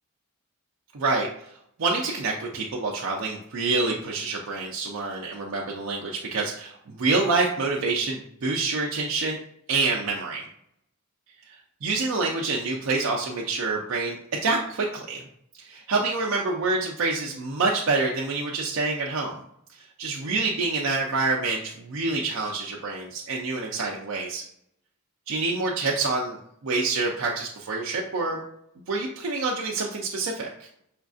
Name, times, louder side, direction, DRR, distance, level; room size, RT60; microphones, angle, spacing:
voice 1, 0.9-1.3 1.8-9.4 9.7-10.4 11.8-15.2 15.6-19.4 19.7-24.4 25.3-28.4 28.9-30.7, right 3 dB, 65° right, -2 dB, 0.5 m, -27 dB
5.0 x 2.5 x 2.4 m, 0.72 s
head